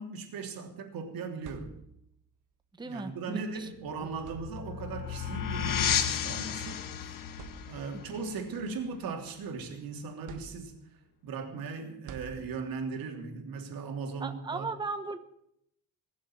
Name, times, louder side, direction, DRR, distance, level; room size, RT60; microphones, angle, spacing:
voice 1, 0.0-1.7 2.8-6.8 7.7-10.7 11.2-14.7, right 4 dB, 80° right, 3 dB, 3.3 m, -38 dB
sound 1, 1.1-2.2 3.5-3.6 4.1-5.0 6.1-6.3 6.8-6.9 7.3-8.1 8.6-9.7 10.3-11.1 12.1-13.0, right 6 dB, 60° right, 1.4 m, -49 dB
voice 2, 2.8-3.7 4.0-4.1 7.9-8.0 14.2-15.2, right 3 dB, 15° right, 8 dB, 1.0 m, -37 dB
sound 2, 3.9-9.3, left 9 dB, 70° left, 1.5 m, -33 dB
21.0 x 7.5 x 9.0 m, 0.75 s
cardioid pair, 140°, 34 cm